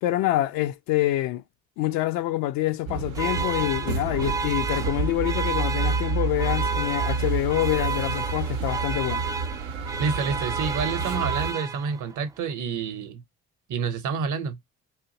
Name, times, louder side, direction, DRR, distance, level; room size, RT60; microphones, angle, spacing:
voice 1, 0.0-1.4 1.8-9.3, left 15 dB, 55° left, 0.4 m, -26 dB
sound 1, 2.9-11.5, right 4 dB, 80° right, 0.6 m, -29 dB
sound 2, 3.1-12.2, right 4 dB, 10° right, 0.3 m, -32 dB
voice 2, 10.0-13.2 13.7-14.6, right 5 dB, 45° right, 0.8 m, -28 dB
3.5 x 2.5 x 2.8 m
figure-of-eight pair, 40°, 41 cm